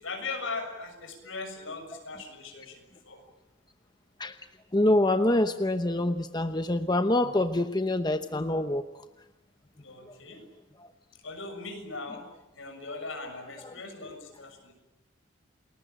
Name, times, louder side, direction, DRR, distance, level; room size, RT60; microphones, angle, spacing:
voice 1, 0.0-3.2 9.8-10.4 11.1-12.3 12.5-14.7, left 3 dB, 70° left, 5 dB, 6.7 m, -39 dB
voice 2, 4.7-8.8 10.8-10.9 13.6-13.8, left 1 dB, 20° left, 9 dB, 0.9 m, -26 dB
29.5 x 21.0 x 9.1 m, 1.0 s
head